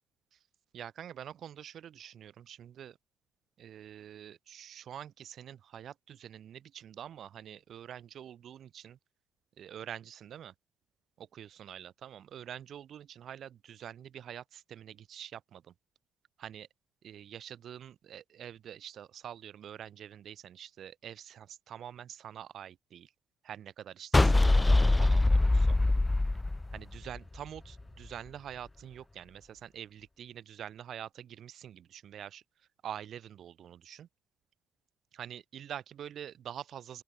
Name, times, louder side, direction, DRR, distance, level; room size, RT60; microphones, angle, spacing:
voice 1, 0.7-3.0 3.6-9.0 9.6-10.5 11.2-15.7 16.4-16.7 17.0-23.1 23.4-25.8 26.7-32.4 32.8-34.1 35.1-37.0, right 10 dB, 55° right, 4.9 m, -46 dB
sound 1, 24.1-27.4, left 2 dB, 15° left, 0.3 m, -23 dB
open air
figure-of-eight pair, 45°, 0 cm